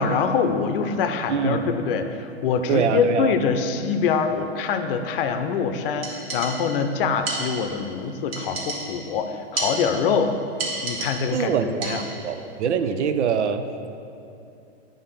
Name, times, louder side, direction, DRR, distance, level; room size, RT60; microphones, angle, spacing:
voice 1, 0.0-10.3 10.8-12.0, left 6 dB, 55° left, 7 dB, 0.6 m, -24 dB
voice 2, 1.3-1.7 2.7-3.3 11.3-13.6, right 6 dB, 85° right, 9 dB, 0.6 m, -24 dB
sound 1, 6.0-6.9 7.3-7.9 8.3-9.2 9.6-10.2 10.6-11.5 11.8-12.3, right 3 dB, 60° right, 1.6 m, -32 dB
8.8 x 3.6 x 5.6 m, 2.6 s
hypercardioid pair, 135°, 34 cm